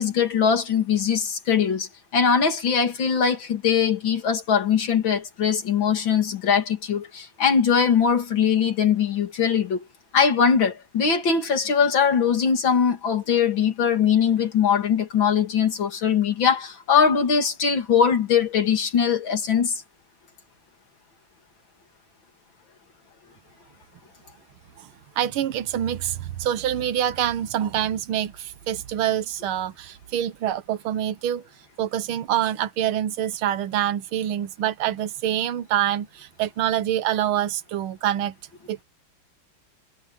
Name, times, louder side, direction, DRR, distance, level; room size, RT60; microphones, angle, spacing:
voice 1, 0.0-9.8 10.1-19.8, left 7 dB, 70° left, 3.0 m, -21 dB
voice 2, 25.2-31.4 31.8-38.4 38.7-38.8, right 11 dB, 85° right, 1.8 m, -26 dB
omnidirectional pair, 2.2 m